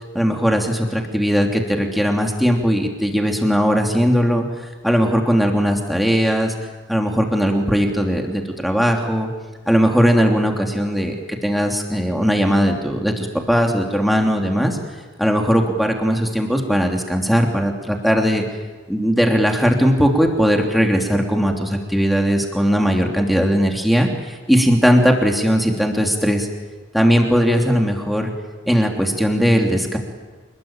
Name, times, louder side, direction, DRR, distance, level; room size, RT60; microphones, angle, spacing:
voice 1, 0.1-6.5 6.9-9.3 9.7-14.8 15.2-18.4 18.9-26.5 26.9-28.3 28.7-30.0, equal, ahead, 1 dB, 3.1 m, -18 dB
27.5 x 21.0 x 9.0 m, 1.3 s
head